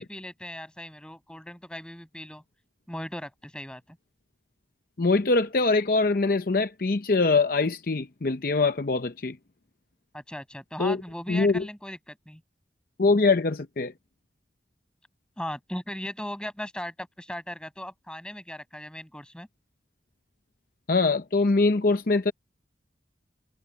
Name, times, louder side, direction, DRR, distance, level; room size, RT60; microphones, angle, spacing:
voice 1, 0.0-2.4 2.9-4.0 10.1-12.4 15.4-19.5, equal, 5° left, 6.4 m, -38 dB
voice 2, 5.0-9.4 10.8-11.0 11.3-11.6 13.0-13.9 20.9-22.3, left 3 dB, 55° left, 0.7 m, -23 dB
head